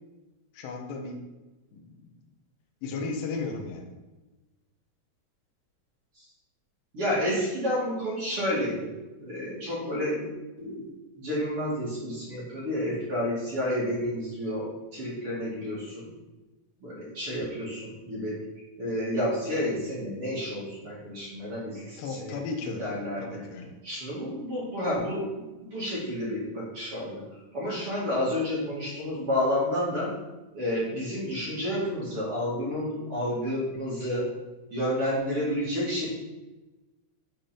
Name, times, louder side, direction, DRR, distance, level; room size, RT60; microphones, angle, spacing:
voice 1, 0.5-1.2 1.7-2.0 2.8-3.9 22.0-23.8, left 4 dB, 80° left, 1 dB, 2.0 m, -35 dB
voice 2, 6.9-8.9 9.2-10.3 10.6-10.9 11.2-16.1 16.8-18.4 18.8-22.3 22.8-23.4 23.8-27.2 27.5-30.1 30.5-34.3 34.7-36.2, left 1 dB, 40° right, -7 dB, 2.3 m, -30 dB
9.9 x 4.4 x 5.2 m, 1.1 s
omnidirectional pair, 6.0 m